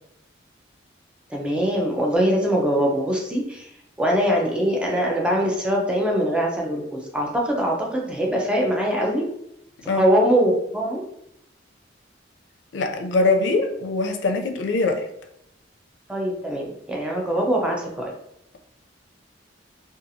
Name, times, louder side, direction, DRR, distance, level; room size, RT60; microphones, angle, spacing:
voice 1, 1.3-3.6 4.0-9.3 10.0-11.0 16.1-18.1, equal, 5° right, -2 dB, 0.5 m, -22 dB
voice 2, 12.7-15.1, left 3 dB, 80° left, 4 dB, 0.4 m, -22 dB
2.7 x 2.3 x 2.6 m, 0.78 s
head